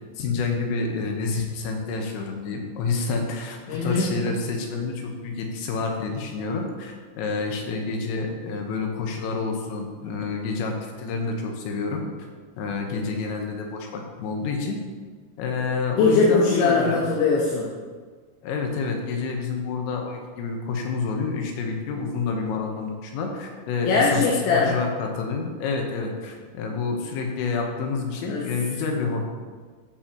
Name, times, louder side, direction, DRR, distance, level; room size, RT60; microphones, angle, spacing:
voice 1, 0.2-12.0 12.6-14.8 15.4-17.0 18.4-29.3, left 4 dB, 90° left, 2 dB, 3.7 m, -28 dB
voice 2, 3.7-4.2 16.0-17.7 23.9-24.7 28.3-28.4, left 4 dB, 75° left, -3 dB, 3.2 m, -21 dB
14.0 x 7.3 x 2.9 m, 1.5 s
omnidirectional pair, 5.7 m